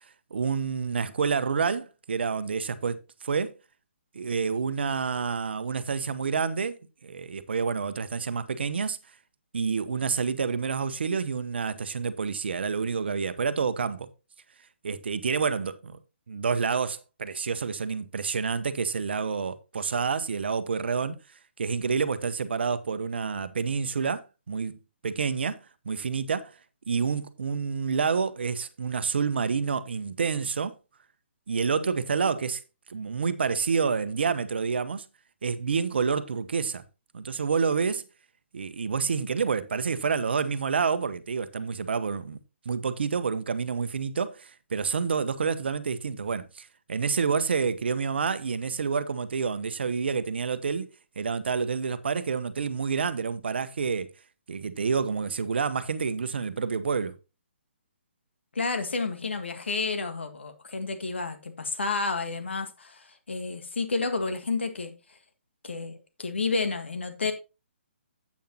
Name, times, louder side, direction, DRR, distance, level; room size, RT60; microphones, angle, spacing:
voice 1, 0.3-3.5 4.1-9.0 9.5-14.1 14.8-16.0 16.3-21.2 21.6-24.8 25.0-26.5 26.9-30.7 31.5-32.6 32.9-35.1 35.4-36.8 37.1-38.0 38.5-42.4 42.6-50.9 51.2-54.1 54.5-57.2, right 5 dB, 60° right, 1.0 m, -28 dB
voice 2, 58.5-64.9 65.6-67.3, left 4 dB, 65° left, 1.6 m, -30 dB
10.5 x 8.5 x 2.9 m
figure-of-eight pair, 135°, 7 cm